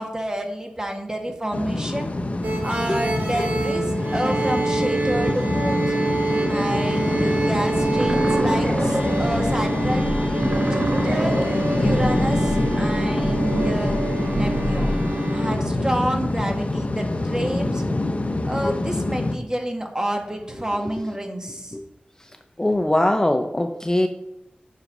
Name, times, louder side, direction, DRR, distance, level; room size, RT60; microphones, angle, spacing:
voice 1, 0.0-2.1 2.6-6.0 6.5-10.1 10.6-11.4 11.8-14.0 14.3-15.0 15.3-17.8 18.5-21.7, right 1 dB, 20° right, 3 dB, 1.8 m, -28 dB
sound 1, 1.5-19.4, left 2 dB, 45° left, 0.9 m, -25 dB
sound 2, 2.4-15.6, right 3 dB, 75° right, 1.5 m, -27 dB
voice 2, 6.4-6.8 7.2-7.3 21.7-21.8 22.6-24.1, left 1 dB, 20° left, 6 dB, 0.6 m, -22 dB
sound 3, 7.7-14.8, right 1 dB, 55° right, 1.7 m, -28 dB
7.5 x 6.6 x 5.4 m, 0.86 s
wide cardioid pair, 55°, 3 cm